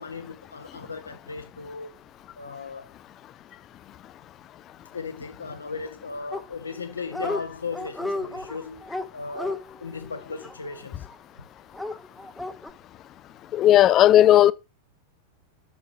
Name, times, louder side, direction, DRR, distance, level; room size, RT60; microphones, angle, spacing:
voice 1, 0.0-1.9 2.4-2.9 4.9-11.1 13.8-14.1, left 4 dB, 75° left, 0.8 m, -36 dB
Dog, 6.3-6.8 7.1-7.4 7.7-11.2 11.7-12.7, left 2 dB, 5° left, 0.9 m, -33 dB
voice 2, 13.5-14.5, left 12 dB, 30° left, 0.5 m, -15 dB
7.2 x 6.3 x 4.4 m
figure-of-eight pair, 90°, 0 cm